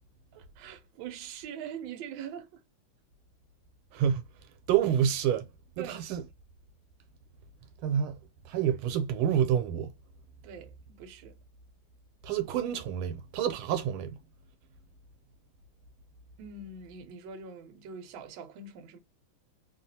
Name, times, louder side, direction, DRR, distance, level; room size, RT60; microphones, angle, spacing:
voice 1, 0.3-2.6 5.8-6.0 10.4-11.4 16.4-19.0, right 6 dB, 75° right, 1.3 m, -43 dB
voice 2, 3.9-4.2 4.7-5.5 5.8-6.2 7.8-8.2 8.4-9.9 12.2-14.2, right 9 dB, 90° right, 1.5 m, -28 dB
3.4 x 2.4 x 2.6 m
omnidirectional pair, 2.3 m